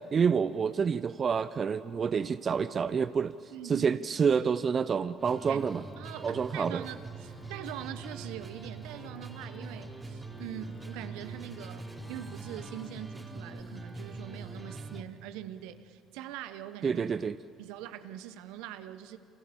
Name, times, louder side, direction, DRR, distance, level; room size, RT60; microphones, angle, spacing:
voice 1, 0.0-5.8 6.2-6.8 16.8-17.4, right 6 dB, 40° right, 14 dB, 0.6 m, -28 dB
voice 2, 3.5-4.3 5.5-17.1 17.6-19.2, right 12 dB, 75° right, 11 dB, 1.2 m, -43 dB
sound 1, 5.2-15.0, right 3 dB, 20° right, 3.5 m, -43 dB
sound 2, 7.3-13.1, left 10 dB, 70° left, 1.4 m, -56 dB
28.5 x 27.5 x 7.2 m, 2.6 s
hypercardioid pair, 55°, 0 cm